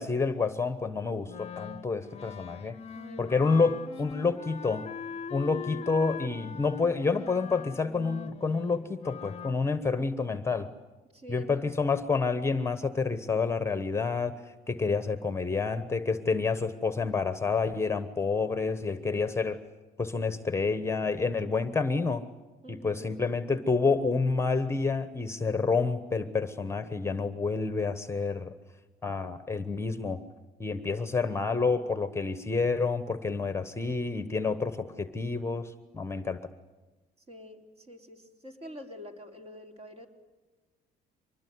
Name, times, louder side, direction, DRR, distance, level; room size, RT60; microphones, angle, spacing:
voice 1, 0.0-2.8 3.2-4.9 5.3-10.7 11.3-19.6 20.0-22.3 22.7-28.5 29.0-30.2 30.6-36.5, left 4 dB, 15° left, 11 dB, 1.1 m, -29 dB
Wind instrument woodwind instrument, 1.3-9.6, left 7 dB, 40° left, 0.8 m, -42 dB
voice 2, 2.9-3.9 5.5-5.9 11.1-11.7 22.6-23.1 37.3-40.1, equal, 35° right, 4 dB, 3.9 m, -46 dB
24.5 x 20.5 x 9.5 m, 1.3 s
cardioid pair, 110°, 17 cm